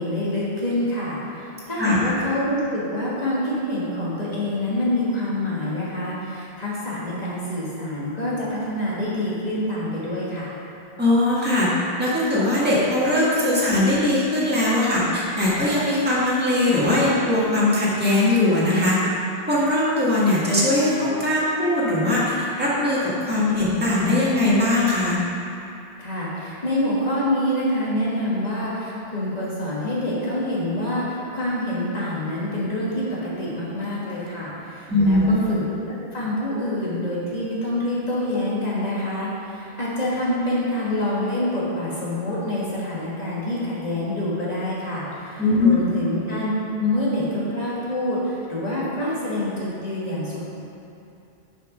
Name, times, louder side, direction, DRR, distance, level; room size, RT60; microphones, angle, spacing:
voice 1, 0.0-10.5 26.0-46.5 46.8-50.4, left 1 dB, 40° left, -7 dB, 1.8 m, -26 dB
voice 2, 11.0-11.7 12.0-19.0 19.5-25.2 34.9-35.4 45.4-45.8, left 1 dB, 10° right, -8 dB, 1.6 m, -20 dB
6.7 x 5.9 x 5.1 m, 2.7 s
omnidirectional pair, 1.1 m